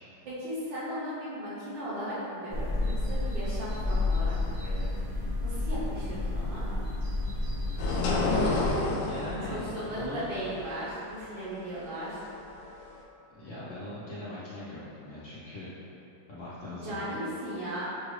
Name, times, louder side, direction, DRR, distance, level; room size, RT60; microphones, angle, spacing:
voice 1, 0.2-4.9 5.4-6.8 9.5-12.2 16.8-17.8, equal, 75° right, -9 dB, 1.7 m, -37 dB
sound 1, 2.5-8.7, left 2 dB, 35° right, 1.1 m, -30 dB
sound 2, 7.8-13.0, left 2 dB, 75° left, 1.1 m, -30 dB
voice 2, 8.9-10.3 13.3-15.7 16.3-17.2, left 1 dB, 50° left, -11 dB, 1.0 m, -40 dB
5.6 x 2.5 x 3.2 m, 2.9 s
omnidirectional pair, 2.0 m